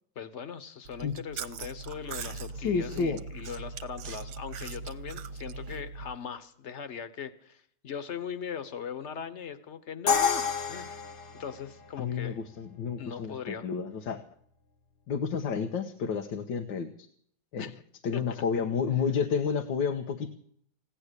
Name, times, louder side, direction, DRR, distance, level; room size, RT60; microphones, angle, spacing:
voice 1, 0.1-11.0 11.4-12.4 13.0-13.6 17.6-17.7 18.1-18.2, left 7 dB, 45° left, 12 dB, 1.3 m, -40 dB
Chewing mastication, 0.8-6.2, right 4 dB, 65° right, 1.4 m, -40 dB
voice 2, 2.6-3.2 12.0-14.2 15.1-17.1 17.5-17.6 18.0-20.3, left 6 dB, 90° left, 6 dB, 1.8 m, -30 dB
Crash cymbal, 10.1-12.0, left 6 dB, 70° left, 1.9 m, -28 dB
16.5 x 10.5 x 8.1 m, 0.64 s
omnidirectional pair, 2.0 m